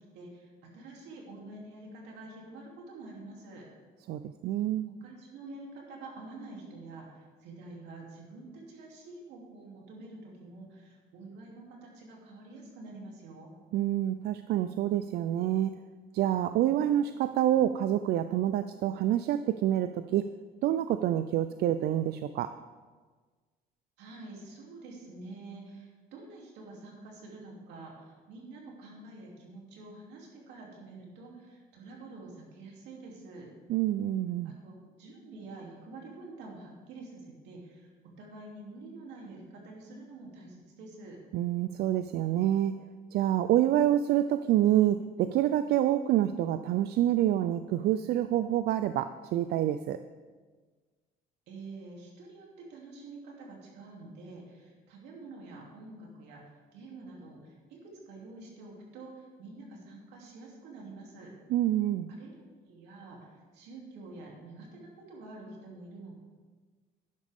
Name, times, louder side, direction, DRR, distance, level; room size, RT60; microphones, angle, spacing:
voice 1, 0.1-3.7 4.8-13.5 24.0-33.5 34.4-37.9 38.2-41.2 51.5-56.4 56.7-61.3 62.1-66.2, right 2 dB, 90° right, -2 dB, 3.0 m, -47 dB
voice 2, 4.1-4.9 13.7-15.7 16.1-20.3 20.6-22.5 33.7-34.5 41.3-42.8 43.1-50.0 61.5-62.1, right 12 dB, 70° right, 11 dB, 0.4 m, -27 dB
12.0 x 10.5 x 3.6 m, 1.4 s
cardioid pair, 110°, 17 cm